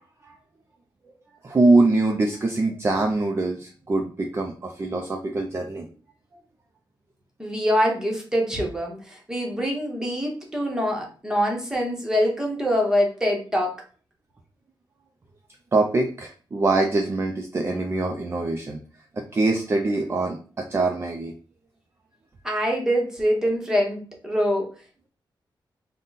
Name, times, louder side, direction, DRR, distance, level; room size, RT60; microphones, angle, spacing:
voice 1, 1.4-5.9 15.7-18.8 19.1-21.3, right 2 dB, 30° right, 2 dB, 0.4 m, -23 dB
voice 2, 7.4-13.7 22.4-24.7, equal, 5° right, -1 dB, 1.0 m, -24 dB
3.7 x 2.2 x 3.9 m, 0.40 s
wide cardioid pair, 130°, 8 cm